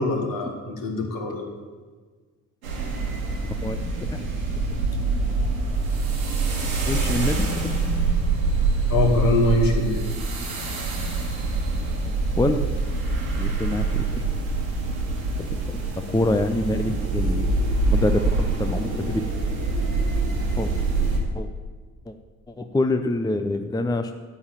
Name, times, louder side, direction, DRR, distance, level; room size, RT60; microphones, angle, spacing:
voice 1, 0.0-1.4 8.9-10.1, left 2 dB, 55° left, 2 dB, 2.4 m, -23 dB
sound 1, 2.6-21.2, right 3 dB, 80° right, 2.1 m, -25 dB
voice 2, 6.9-7.5 12.4-12.6 13.4-14.2 15.4-15.8 16.1-17.4 17.8-19.3 20.6-20.7 21.3-21.5 22.1-22.2 22.5-24.1, left 2 dB, 10° left, 8 dB, 0.7 m, -25 dB
12.5 x 5.6 x 8.9 m, 1.4 s
figure-of-eight pair, 45°, 41 cm